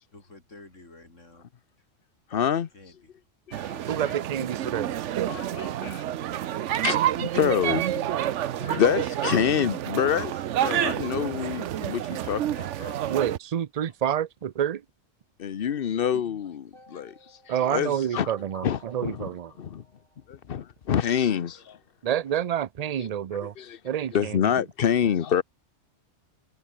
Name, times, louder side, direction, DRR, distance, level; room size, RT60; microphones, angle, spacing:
voice 1, 0.1-1.5 2.3-2.5 2.7-3.1 21.3-21.6, left 2 dB, 80° left, 5.0 m, -50 dB
voice 2, 2.3-2.7 3.5-3.8 5.3-6.0 6.8-7.9 8.6-13.0 15.4-17.1 17.7-18.3 18.6-19.3 19.6-19.8 20.3-21.8 23.0-23.1 23.6-23.8 24.1-25.4, left 8 dB, 50° left, 0.9 m, -27 dB
sound 1, 3.5-13.4, right 11 dB, 75° right, 1.0 m, -29 dB
voice 3, 3.9-4.9 13.1-14.8 17.5-19.5 22.0-23.5 23.8-24.5, right 10 dB, 45° right, 0.5 m, -28 dB
sound 2, 16.7-20.9, left 1 dB, 25° left, 8.1 m, -56 dB
omnidirectional pair, 1.3 m